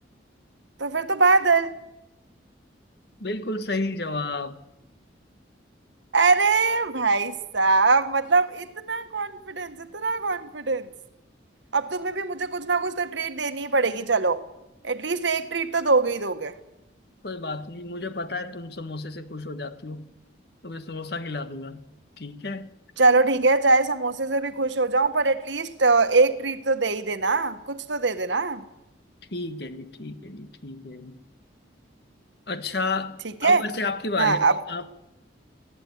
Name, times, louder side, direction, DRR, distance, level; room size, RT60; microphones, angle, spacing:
voice 1, 0.8-1.7 6.1-10.9 11.7-14.4 14.8-16.5 23.0-28.6 33.4-33.6 34.2-34.6, right 3 dB, 70° right, 1.5 m, -22 dB
voice 2, 3.2-4.6 17.2-20.1 20.6-21.8 22.2-22.7 29.3-31.2 32.5-34.9, left 3 dB, 55° left, 1.5 m, -32 dB
23.0 x 16.5 x 9.4 m
head